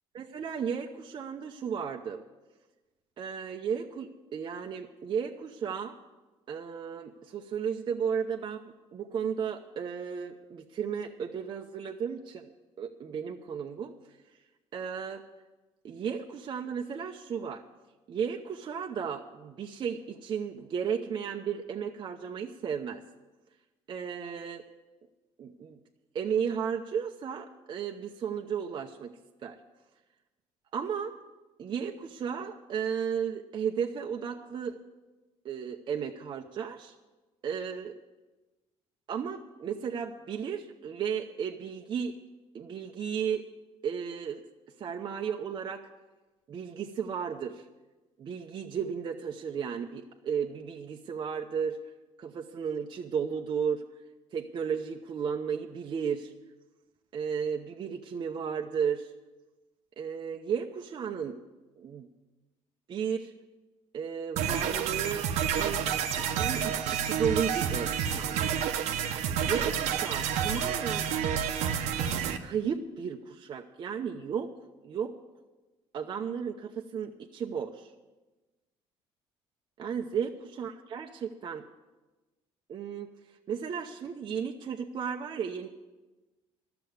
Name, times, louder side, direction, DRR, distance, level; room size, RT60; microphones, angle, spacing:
voice 1, 0.1-2.2 3.2-5.9 6.5-12.5 12.8-13.9 14.7-15.2 15.8-17.6 18.1-23.0 23.9-24.6 25.4-25.8 26.1-29.1 29.4-29.6 30.7-31.2 31.6-34.8 35.4-36.9 37.4-37.9 39.1-42.2 42.5-43.4 43.8-44.4 44.8-45.9 46.5-47.6 48.2-51.8 52.2-53.8 54.3-56.3 57.1-59.1 60.0-61.4 61.8-62.1 62.9-63.3 63.9-65.9 66.2-68.5 69.3-71.1 72.4-74.5 74.8-75.1 75.9-77.9 79.8-81.6 82.7-83.1 83.5-85.7, right 7 dB, 45° right, 2 dB, 0.8 m, -34 dB
sound 1, 64.4-72.4, right 8 dB, 90° right, 0.9 m, -29 dB
12.5 x 6.9 x 9.3 m, 1.2 s
cardioid pair, 110°, 11 cm